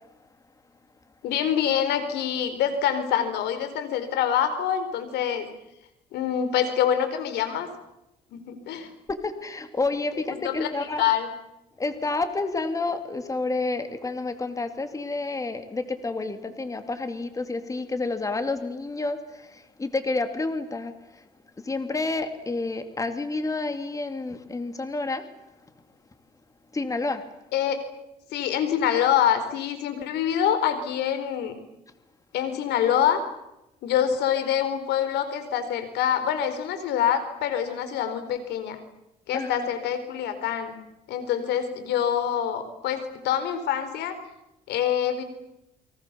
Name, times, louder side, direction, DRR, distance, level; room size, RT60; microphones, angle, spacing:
voice 1, 1.2-5.5 6.1-7.7 8.3-8.9 10.3-11.3 27.5-27.8 28.3-31.5 32.3-33.2 33.8-38.8 39.3-40.8 41.1-44.2 44.7-45.2, left 9 dB, 80° left, 10 dB, 4.5 m, -25 dB
voice 2, 9.1-11.0 11.8-21.2 21.6-25.2 26.7-27.2 39.3-39.7, left 3 dB, 20° left, 8 dB, 2.6 m, -29 dB
29.5 x 24.0 x 7.0 m, 0.90 s
cardioid pair, 110°, 17 cm